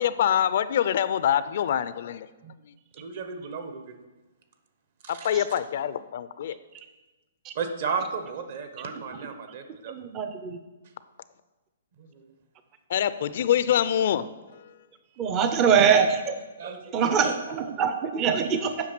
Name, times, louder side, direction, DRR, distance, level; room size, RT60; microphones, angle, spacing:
voice 1, 0.0-2.3 5.1-6.6 12.9-14.2, left 10 dB, 55° left, 14 dB, 0.4 m, -25 dB
voice 2, 3.0-3.9 5.0-5.3 7.5-9.9 15.6-15.9 16.6-17.4, right 5 dB, 50° right, 7 dB, 1.1 m, -34 dB
voice 3, 9.9-10.6 15.2-16.3 16.9-18.7, right 6 dB, 25° right, 8 dB, 0.5 m, -23 dB
8.5 x 5.8 x 6.0 m, 1.2 s
hypercardioid pair, 155°, 0 cm